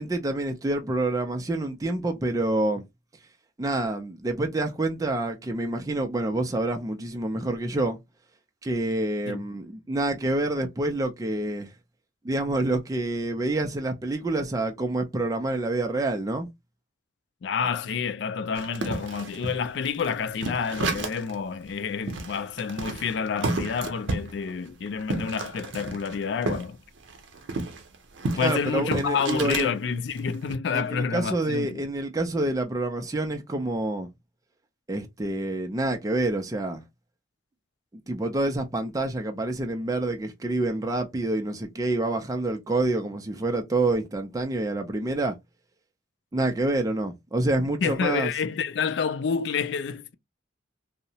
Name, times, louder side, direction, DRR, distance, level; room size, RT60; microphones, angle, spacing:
voice 1, 0.0-2.8 3.6-8.0 8.6-11.7 12.2-16.5 28.4-29.7 30.7-34.1 34.9-36.8 38.1-45.4 46.3-48.3, right 2 dB, 20° right, 0.4 m, -27 dB
voice 2, 17.4-26.8 28.4-31.9 47.8-50.1, left 6 dB, 65° left, 0.3 m, -29 dB
sound 1, 18.6-21.4 21.7-21.8 22.1-26.7 27.0-29.7 30.2-30.6, right 3 dB, 80° right, 0.5 m, -32 dB
2.7 x 2.0 x 2.7 m
head